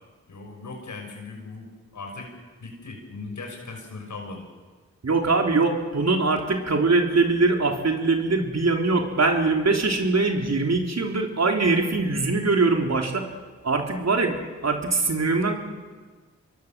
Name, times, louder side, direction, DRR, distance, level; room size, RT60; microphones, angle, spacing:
voice 1, 0.3-1.7 1.9-2.3 2.6-4.4, left 3 dB, 85° left, 2 dB, 5.8 m, -38 dB
voice 2, 5.0-13.2 13.6-15.6, right 3 dB, 65° right, 3 dB, 3.6 m, -22 dB
26.5 x 22.5 x 7.5 m, 1.4 s
cardioid pair, 50°, 29 cm